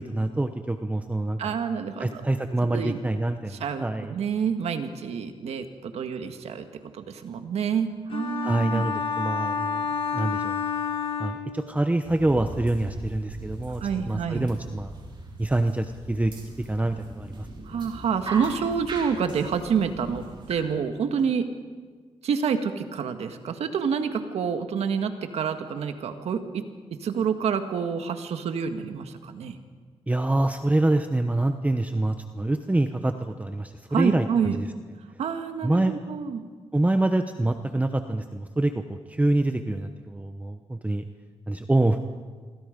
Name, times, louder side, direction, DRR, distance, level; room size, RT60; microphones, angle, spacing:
voice 1, 0.0-1.5 2.0-4.1 8.4-9.8 10.1-10.6 11.2-14.9 15.4-16.3 16.7-17.5 30.1-34.7 35.6-35.9 36.7-41.0 41.5-42.0, right 2 dB, 15° right, 7 dB, 1.0 m, -26 dB
voice 2, 1.4-2.2 2.6-3.0 3.5-6.6 6.9-8.8 13.8-14.5 17.7-21.5 22.2-26.7 27.0-29.6 33.9-34.6 35.2-36.5, right 6 dB, 85° right, 7 dB, 1.8 m, -28 dB
sound 1, 8.1-12.0, left 6 dB, 60° left, 4.5 m, -29 dB
sound 2, 12.0-20.6, right 2 dB, 50° right, 5.6 m, -40 dB
27.0 x 22.5 x 5.3 m, 1.5 s
cardioid pair, 85°, 11 cm